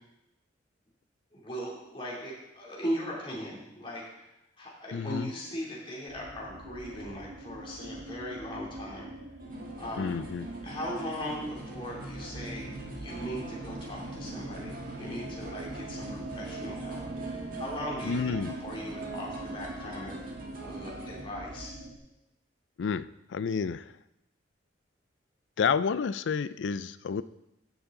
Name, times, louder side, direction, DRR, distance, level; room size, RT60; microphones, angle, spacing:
voice 1, 1.3-4.3 4.6-9.1 9.8-10.1 10.6-12.7 13.0-17.0 17.6-20.2 20.6-21.7, equal, 30° left, -4 dB, 2.9 m, -38 dB
voice 2, 4.9-5.3 10.0-10.5 18.0-18.6 22.8-23.9 25.6-27.2, left 6 dB, 80° left, 16 dB, 0.4 m, -30 dB
sound 1, 6.1-22.0, right 2 dB, 85° right, 1.3 m, -42 dB
sound 2, 9.4-21.2, right 2 dB, 50° right, 1.8 m, -43 dB
15.0 x 7.2 x 3.8 m, 0.90 s
head